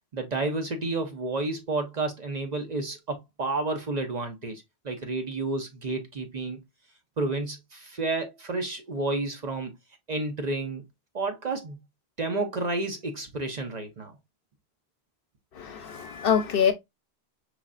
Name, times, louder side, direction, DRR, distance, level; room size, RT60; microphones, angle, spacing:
voice 1, 0.1-6.6 7.2-9.7 10.1-10.8 11.1-11.8 12.2-14.1, right 2 dB, 45° right, 0.7 m, -30 dB
voice 2, 15.5-16.7, left 7 dB, 65° left, 0.8 m, -24 dB
4.8 x 3.1 x 2.4 m
omnidirectional pair, 1.1 m